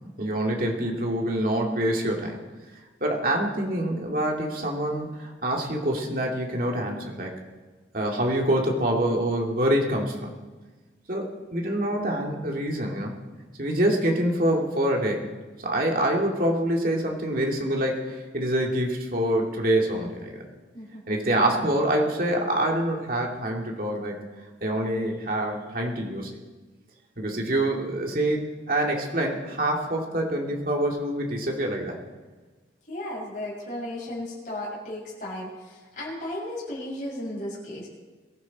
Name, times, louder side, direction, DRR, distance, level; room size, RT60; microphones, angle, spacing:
voice 1, 0.2-2.4 3.0-7.4 7.9-10.3 11.1-13.1 13.6-15.3 15.6-20.4 21.1-24.2 24.6-26.3 27.2-32.0, right 1 dB, 50° right, 0 dB, 2.5 m, -26 dB
voice 2, 32.9-37.9, left 1 dB, 40° left, -5 dB, 6.1 m, -35 dB
22.0 x 14.5 x 4.2 m, 1.3 s
head